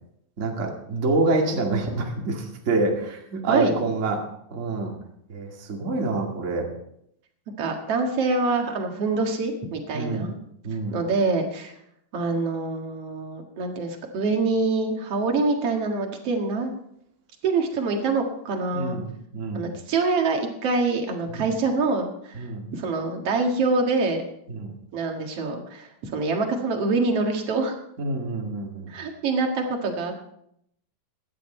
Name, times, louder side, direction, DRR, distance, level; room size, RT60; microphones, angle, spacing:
voice 1, 0.4-4.2 4.5-4.9 5.3-6.7 9.9-10.3 10.6-11.0 18.7-19.7 21.3-21.4 22.4-22.6 24.5-24.7 28.0-28.9, right 3 dB, 25° right, 0 dB, 1.8 m, -27 dB
voice 2, 7.6-10.3 10.9-11.7 12.1-16.8 17.4-19.0 19.5-24.2 24.9-27.7 28.9-30.3, right 3 dB, 50° right, 3 dB, 2.4 m, -25 dB
16.0 x 11.0 x 4.4 m, 0.73 s
omnidirectional pair, 4.1 m